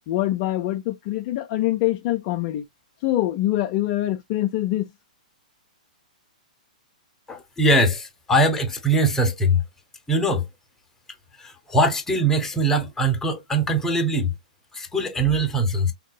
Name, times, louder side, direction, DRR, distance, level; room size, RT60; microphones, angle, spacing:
voice 1, 0.1-2.6 3.0-4.9, left 15 dB, 40° left, 0.5 m, -24 dB
voice 2, 7.3-9.6 10.1-10.5 11.4-14.3 14.7-15.9, right 1 dB, 10° left, 1.0 m, -21 dB
3.7 x 2.8 x 2.2 m
hypercardioid pair, 120°, 4 cm